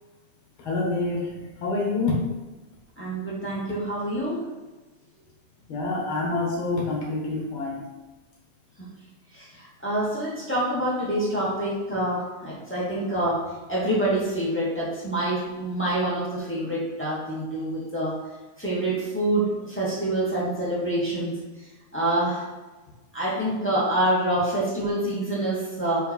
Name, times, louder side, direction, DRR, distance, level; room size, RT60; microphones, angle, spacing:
voice 1, 0.6-2.4 5.7-7.9, left 3 dB, 45° left, -2 dB, 2.0 m, -27 dB
voice 2, 3.0-4.5 9.3-18.2 18.6-21.4 21.9-22.4 23.1-26.1, right 1 dB, 5° left, -8 dB, 1.0 m, -26 dB
5.5 x 5.2 x 4.6 m, 1.2 s
omnidirectional pair, 3.8 m